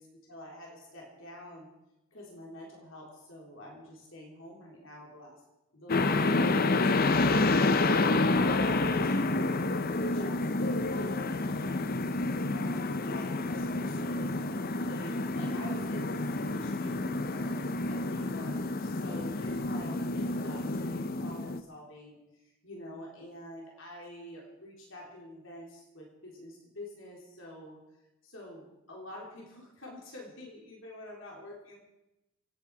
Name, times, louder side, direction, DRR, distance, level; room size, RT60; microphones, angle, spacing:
voice 1, 0.0-1.7 2.1-5.4 5.7-7.5 8.3-12.0 12.4-27.8 28.2-31.8, left 1 dB, 60° left, -2 dB, 3.7 m, -47 dB
sound 1, 5.9-21.6, left 2 dB, 40° left, 0.6 m, -29 dB
28.0 x 9.4 x 4.8 m, 0.93 s
head